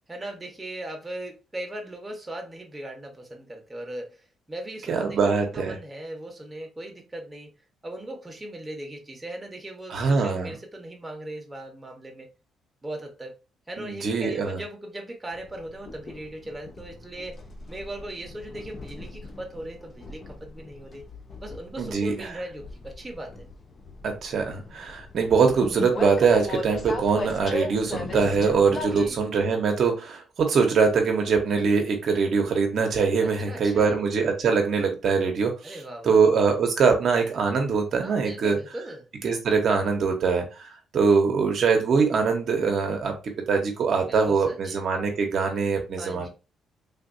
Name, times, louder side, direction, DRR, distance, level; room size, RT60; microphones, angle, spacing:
voice 1, 0.1-7.5 7.8-12.3 12.8-13.3 13.7-17.4 17.7-21.1 21.4-23.5 28.6-29.2 33.2-34.0 35.6-36.3 38.0-39.1 43.9-44.8 46.0-46.3, right 1 dB, 15° right, 1.0 m, -38 dB
voice 2, 4.9-5.7 9.9-10.5 13.8-14.6 21.8-22.3 24.0-35.8 36.0-38.6 39.2-46.3, right 5 dB, 60° right, 0.8 m, -23 dB
Train, 15.3-29.1, left 2 dB, 40° left, 0.6 m, -37 dB
3.5 x 2.5 x 2.6 m
cardioid pair, 90°, 0 cm